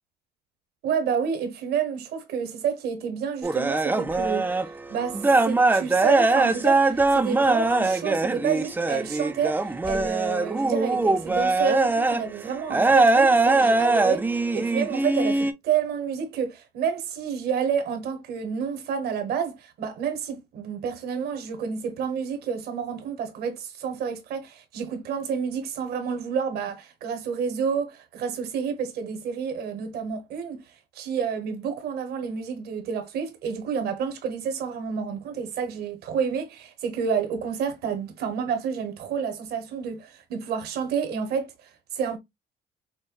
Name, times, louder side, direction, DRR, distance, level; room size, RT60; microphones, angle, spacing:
voice 1, 0.8-30.6 30.9-42.2, right 7 dB, 70° right, 1.1 m, -29 dB
sound 1, 3.4-4.7 5.0-12.2 12.7-15.5, right 3 dB, 10° right, 0.4 m, -22 dB
5.5 x 2.2 x 2.3 m
cardioid pair, 110°, 17 cm